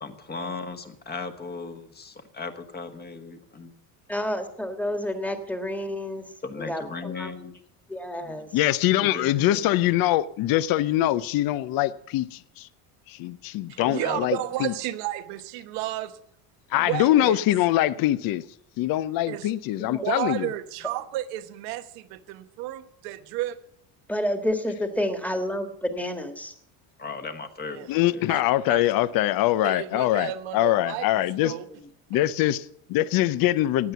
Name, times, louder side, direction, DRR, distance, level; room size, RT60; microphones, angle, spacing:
voice 1, 0.0-3.7 6.4-7.5 8.2-8.5 9.0-9.7 13.7-14.2 27.0-28.3, left 4 dB, 20° left, 1.3 m, -37 dB
voice 2, 4.1-6.3 6.5-7.4 7.9-8.5 19.8-20.0 24.1-26.5 31.7-31.9, left 1 dB, 5° left, 1.6 m, -30 dB
voice 3, 8.5-12.7 13.1-14.7 16.7-18.4 18.8-20.5 27.9-31.5 32.1-33.9, left 14 dB, 50° left, 0.7 m, -23 dB
voice 4, 13.7-16.2 16.7-17.4 19.3-19.5 19.8-23.6 27.7-27.9 28.3-28.4 28.7-29.1 29.6-31.7, right 14 dB, 80° right, 1.2 m, -32 dB
15.5 x 9.2 x 6.8 m
cardioid pair, 135°, 44 cm